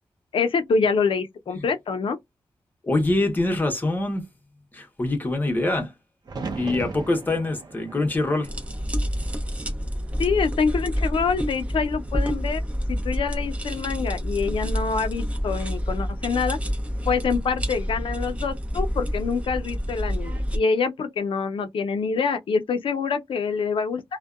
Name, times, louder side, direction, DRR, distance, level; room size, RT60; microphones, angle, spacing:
voice 1, 0.3-2.2 10.2-12.6 12.9-16.6 17.0-24.0, left 5 dB, 85° left, 0.5 m, -25 dB
voice 2, 2.8-4.2 4.7-5.9 6.5-8.5, left 2 dB, 20° left, 0.8 m, -24 dB
sound 1, 6.2-10.3 10.7-11.4 13.3-13.8, right 4 dB, 50° right, 0.6 m, -39 dB
sound 2, 8.4-20.6, equal, 15° right, 0.6 m, -28 dB
2.6 x 2.1 x 2.3 m
wide cardioid pair, 175°, 9 cm